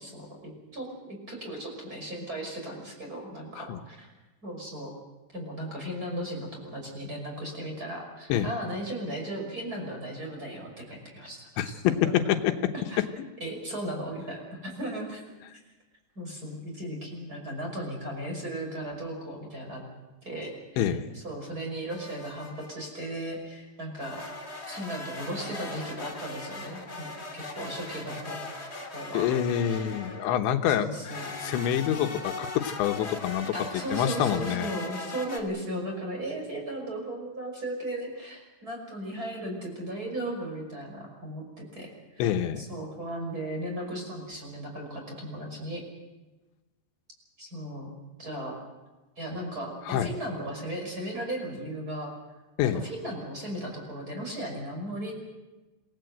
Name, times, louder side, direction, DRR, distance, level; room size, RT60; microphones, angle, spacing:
voice 1, 0.0-4.1 4.4-4.9 5.3-12.1 12.7-13.0 13.4-15.2 15.5-15.6 16.2-19.8 20.2-24.2 24.7-28.4 28.9-29.3 29.6-29.9 30.8-31.4 33.5-45.8 47.4-48.5 49.2-52.1 52.6-55.1, right 1 dB, 20° right, 1 dB, 5.9 m, -36 dB
voice 2, 20.8-21.1 29.1-30.9 31.4-33.5 33.9-34.8 42.2-42.7 49.9-50.1 52.6-52.8, left 10 dB, 85° left, 6 dB, 3.4 m, -27 dB
sound 1, 21.9-22.9 24.0-30.4 31.0-35.4, left 3 dB, 20° left, 2.0 m, -39 dB
27.5 x 17.5 x 7.9 m, 1.1 s
omnidirectional pair, 5.2 m